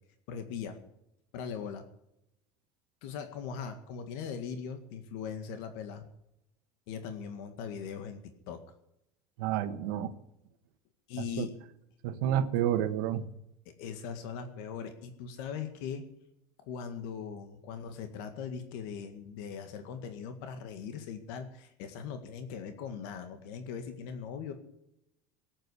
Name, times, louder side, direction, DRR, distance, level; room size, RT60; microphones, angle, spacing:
voice 1, 0.3-0.8 1.3-1.9 3.0-6.0 6.9-8.2 8.5-8.6 11.1-11.5 13.7-16.1 16.6-24.5, left 7 dB, 70° left, 7 dB, 2.0 m, -40 dB
voice 2, 9.4-10.1 11.2-11.5 12.0-13.3, right 10 dB, 80° right, 12 dB, 1.4 m, -30 dB
18.0 x 8.8 x 8.4 m, 0.81 s
cardioid pair, 170°, 11 cm